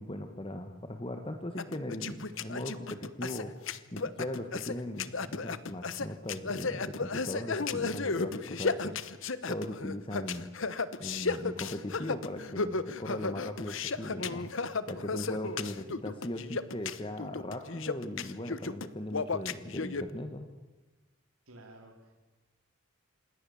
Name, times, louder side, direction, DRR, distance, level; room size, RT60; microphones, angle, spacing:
voice 1, 0.0-9.0 9.5-10.5 11.0-14.5 14.9-20.5, left 1 dB, 25° left, 6 dB, 1.5 m, -39 dB
sound 1, 1.6-20.0, left 4 dB, 65° left, 1.0 m, -34 dB
voice 2, 21.5-22.2, right 1 dB, 80° right, 2 dB, 3.3 m, -53 dB
27.0 x 21.0 x 7.3 m, 1.2 s
head